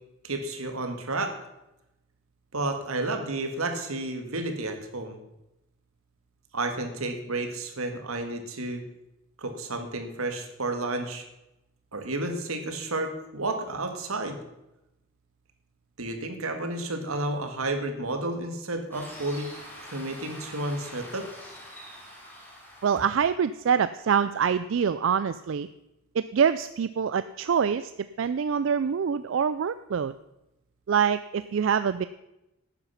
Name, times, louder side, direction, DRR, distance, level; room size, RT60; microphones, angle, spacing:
voice 1, 0.2-1.4 2.5-5.2 6.5-8.8 9.4-11.3 11.9-14.4 16.0-19.5 19.8-21.3, right 2 dB, 85° right, 6 dB, 1.8 m, -31 dB
sound 1, 18.9-23.2, equal, 10° left, 2.7 m, -45 dB
voice 2, 22.8-25.7 26.1-30.1 30.9-32.1, right 7 dB, 60° right, 14 dB, 0.4 m, -25 dB
11.5 x 9.2 x 5.7 m, 0.91 s
head